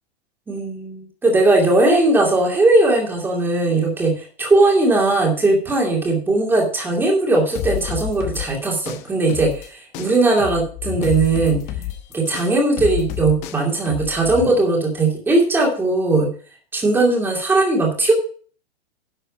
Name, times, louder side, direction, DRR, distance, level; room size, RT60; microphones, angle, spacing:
voice 1, 0.5-11.6 12.1-16.3 16.7-18.1, right 2 dB, 5° right, 0 dB, 2.5 m, -18 dB
sound 1, 7.5-9.7 9.9-14.5, left 12 dB, 20° left, 1.0 m, -29 dB
11.0 x 7.5 x 5.2 m, 0.42 s
supercardioid pair, 175°, 31 cm